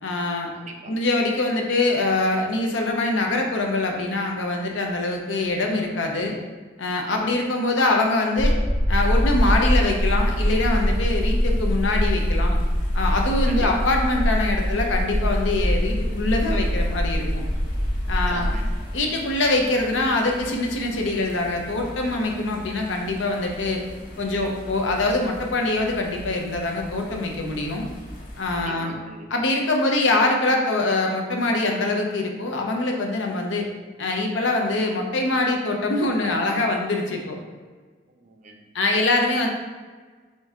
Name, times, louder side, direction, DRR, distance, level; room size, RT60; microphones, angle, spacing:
voice 1, 0.0-0.5 0.9-6.3 6.8-8.6 8.9-12.6 12.9-17.4 18.1-18.5 18.9-23.8 24.2-27.8 28.4-28.9 29.3-33.7 34.0-37.4 38.7-39.5, left 2 dB, 70° left, 2 dB, 0.7 m, -24 dB
voice 2, 0.5-0.9 13.5-13.7 18.0-18.6 28.7-29.3 38.2-38.6, right 3 dB, 40° right, 2 dB, 0.5 m, -40 dB
sound 1, 8.4-18.8, equal, 20° left, 1.0 m, -23 dB
sound 2, 9.0-28.6, equal, 45° left, 1.0 m, -41 dB
5.2 x 2.7 x 3.6 m, 1.4 s
head